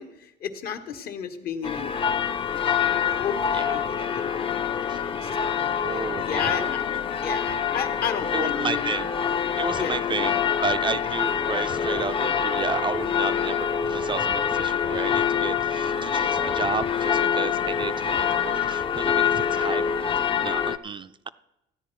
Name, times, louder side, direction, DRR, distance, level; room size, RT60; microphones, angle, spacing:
voice 1, 0.0-4.5 4.7-6.8 7.2-8.9 9.8-10.2, left 7 dB, 65° left, 8 dB, 1.2 m, -34 dB
sound 1, 1.6-20.8, left 8 dB, 30° left, 0.5 m, -25 dB
voice 2, 3.5-3.9 4.9-5.0 5.8-6.7 8.3-9.1 9.6-20.1 20.4-21.3, right 6 dB, 30° right, 12 dB, 0.3 m, -32 dB
14.0 x 9.8 x 4.5 m, 0.88 s
cardioid pair, 110°, 17 cm